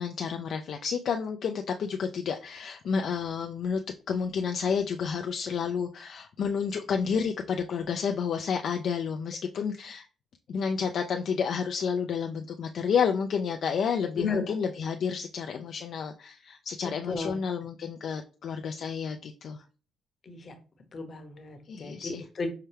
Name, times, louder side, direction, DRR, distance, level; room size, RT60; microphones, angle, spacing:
voice 1, 0.0-3.8 4.1-10.1 10.5-19.6 21.7-22.3, left 6 dB, 65° left, 4 dB, 0.3 m, -30 dB
voice 2, 14.2-14.5 17.1-17.4 20.3-20.5 20.9-22.5, left 4 dB, 45° left, 7 dB, 0.8 m, -33 dB
5.6 x 2.2 x 3.3 m, 0.36 s
cardioid pair, 90°, 0 cm